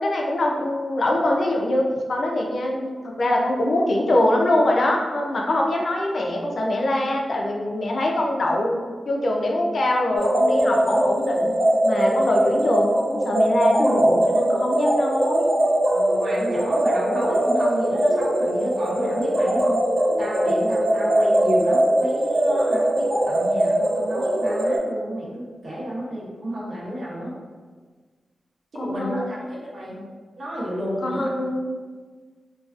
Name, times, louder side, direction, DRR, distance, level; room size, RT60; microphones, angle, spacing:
voice 1, 0.0-8.8 9.1-11.6 11.8-15.5 28.8-29.4 31.0-31.8, left 1 dB, 60° left, 0 dB, 0.4 m, -23 dB
sound 1, 10.2-24.8, right 1 dB, 35° right, 0.7 m, -21 dB
voice 2, 15.9-19.8 20.2-27.4 28.7-30.0 30.4-31.3, equal, 70° right, -7 dB, 0.8 m, -31 dB
2.3 x 2.2 x 2.4 m, 1.5 s
wide cardioid pair, 95°, 0 cm